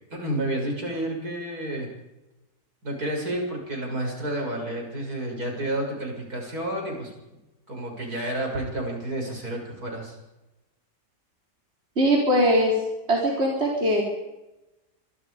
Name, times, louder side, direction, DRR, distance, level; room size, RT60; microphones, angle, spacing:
voice 1, 0.1-1.9 2.8-7.1 7.7-10.2, right 1 dB, 60° right, 1 dB, 7.5 m, -30 dB
voice 2, 12.0-12.7 13.1-14.0, equal, 35° right, -2 dB, 4.4 m, -21 dB
26.0 x 24.0 x 5.2 m, 1.0 s
omnidirectional pair, 1.8 m